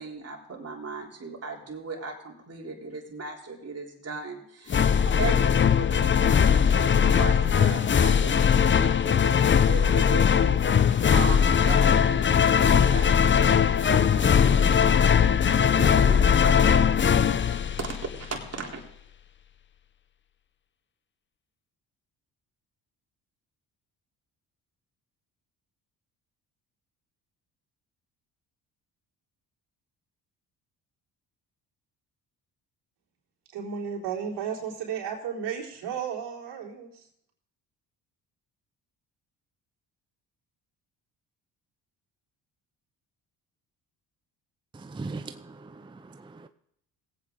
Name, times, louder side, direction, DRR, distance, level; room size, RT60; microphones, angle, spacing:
voice 1, 0.0-13.5 13.8-14.9 15.6-17.3 17.8-18.8, right 4 dB, 35° right, -1 dB, 3.6 m, -37 dB
sound 1, 4.7-18.3, left 7 dB, 30° left, 0.6 m, -20 dB
voice 2, 33.5-37.1, right 7 dB, 75° right, -3 dB, 3.9 m, -33 dB
voice 3, 44.7-46.5, right 3 dB, 10° right, 9 dB, 0.5 m, -40 dB
19.0 x 8.6 x 3.9 m, 0.72 s
supercardioid pair, 65°, 41 cm